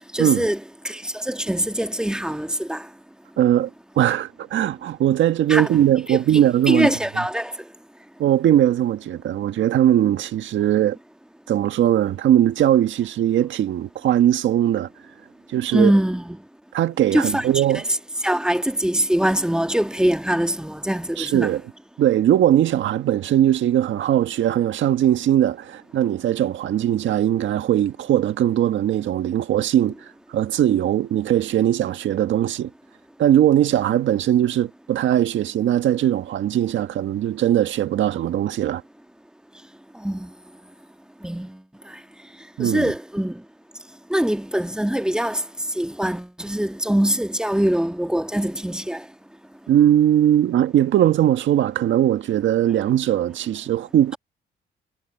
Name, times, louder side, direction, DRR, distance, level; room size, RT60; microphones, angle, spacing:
voice 1, 0.1-2.9 5.5-5.7 6.1-7.5 15.7-16.4 17.1-17.8 18.2-21.6 40.0-40.3 41.2-41.6 42.6-43.4 44.1-45.4 45.7-49.0, right 1 dB, 5° right, 1.5 m, -23 dB
voice 2, 3.4-3.7 3.9-6.9 8.2-11.0 11.5-14.9 15.5-15.9 16.7-17.8 21.2-21.6 22.0-29.9 30.3-32.7 33.2-38.8 42.6-42.9 49.7-54.2, right 11 dB, 75° right, 1.6 m, -20 dB
cardioid pair, 90°, 20 cm